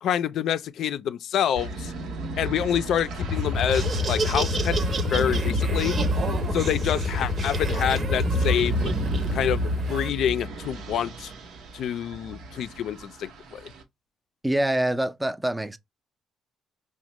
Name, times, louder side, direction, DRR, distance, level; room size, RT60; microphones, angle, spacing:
voice 1, 0.0-1.9 2.4-4.8 5.1-6.0 6.5-8.9 9.3-11.3 11.7-13.7, left 9 dB, 75° left, 0.4 m, -27 dB
sound 1, 1.6-13.8, right 2 dB, 80° right, 0.7 m, -30 dB
sound 2, 3.2-10.0, left 6 dB, 30° left, 0.6 m, -30 dB
Laughter, 3.5-10.1, right 4 dB, 45° right, 0.7 m, -33 dB
voice 2, 14.4-15.8, right 1 dB, 10° right, 0.4 m, -25 dB
5.0 x 2.1 x 2.9 m
cardioid pair, 90°, 0 cm